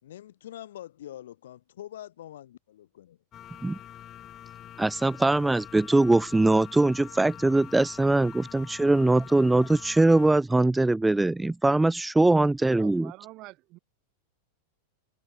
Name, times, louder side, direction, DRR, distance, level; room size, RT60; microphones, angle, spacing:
voice 1, 0.0-3.2, left 12 dB, 60° left, 3.4 m, -44 dB
sound 1, 3.3-10.4, left 11 dB, 30° left, 1.1 m, -45 dB
voice 2, 4.8-13.1, right 2 dB, 5° right, 0.4 m, -22 dB
voice 3, 12.8-13.8, right 20 dB, 40° right, 2.5 m, -46 dB
figure-of-eight pair, 90°, 0 cm